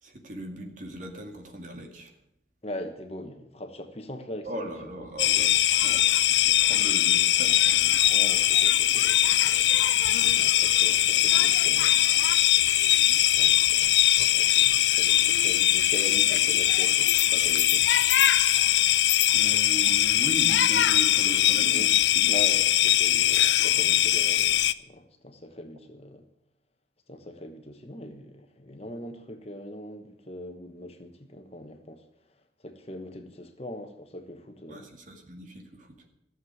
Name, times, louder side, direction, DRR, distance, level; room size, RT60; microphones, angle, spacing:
voice 1, 0.0-2.1 4.4-8.1 19.3-22.4 34.7-36.1, right 1 dB, 45° right, 2.3 m, -39 dB
voice 2, 2.6-4.7 8.1-9.9 10.1-12.0 13.3-17.9 21.7-21.9 22.3-26.3 27.1-32.0 32.6-34.9, left 1 dB, 35° left, 1.3 m, -41 dB
sound 1, 5.2-24.7, left 12 dB, 90° left, 0.5 m, -21 dB
14.5 x 7.7 x 9.4 m
head